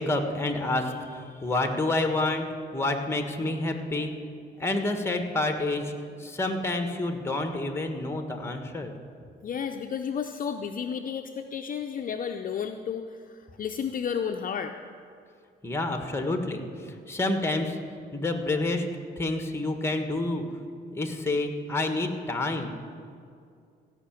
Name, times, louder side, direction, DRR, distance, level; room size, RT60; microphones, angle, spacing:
voice 1, 0.0-2.5 2.7-4.1 4.6-5.9 6.2-8.9 15.6-17.8 18.1-18.9 19.2-20.4 20.9-22.8, left 2 dB, 10° left, 5 dB, 1.5 m, -28 dB
voice 2, 9.4-14.7, left 7 dB, 45° left, 6 dB, 0.6 m, -32 dB
16.0 x 5.9 x 8.9 m, 2.3 s
cardioid pair, 90°, 20 cm